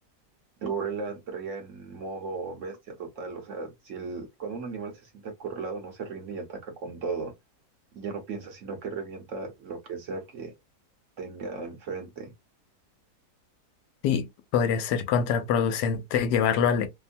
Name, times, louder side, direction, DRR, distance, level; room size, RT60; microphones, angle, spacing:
voice 1, 0.6-7.3 7.9-10.5 11.2-12.3, right 4 dB, 60° right, 0.9 m, -36 dB
voice 2, 14.5-16.9, left 7 dB, 85° left, 1.2 m, -24 dB
2.9 x 2.1 x 2.5 m
omnidirectional pair, 1.7 m